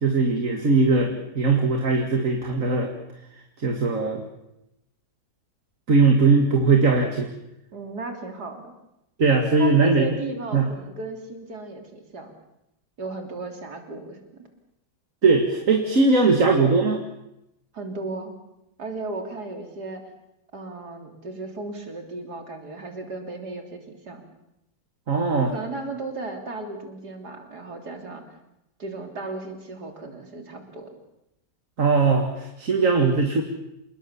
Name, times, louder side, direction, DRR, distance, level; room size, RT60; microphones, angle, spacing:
voice 1, 0.0-2.9 3.6-4.2 5.9-7.3 9.2-10.0 10.5-10.7 15.2-17.0 25.1-25.5 31.8-33.4, right 4 dB, 50° right, 3 dB, 2.4 m, -20 dB
voice 2, 7.7-8.7 9.6-12.3 13.0-14.2 17.7-18.3 18.8-20.0 20.5-24.2 25.5-28.2 28.8-30.9, right 3 dB, 70° right, 4 dB, 3.8 m, -35 dB
28.0 x 20.0 x 7.0 m, 0.86 s
omnidirectional pair, 1.8 m